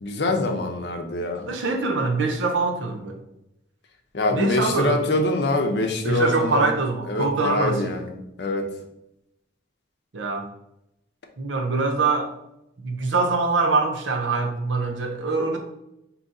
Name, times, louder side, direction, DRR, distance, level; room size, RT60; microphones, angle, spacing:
voice 1, 0.0-1.5 4.1-6.7 7.1-8.7, left 2 dB, 65° left, 4 dB, 0.6 m, -24 dB
voice 2, 1.5-3.2 4.3-5.0 6.0-8.0 10.1-10.5 11.4-12.3 12.8-15.6, right 3 dB, 85° right, 4 dB, 0.7 m, -24 dB
4.0 x 2.8 x 3.7 m, 0.84 s
head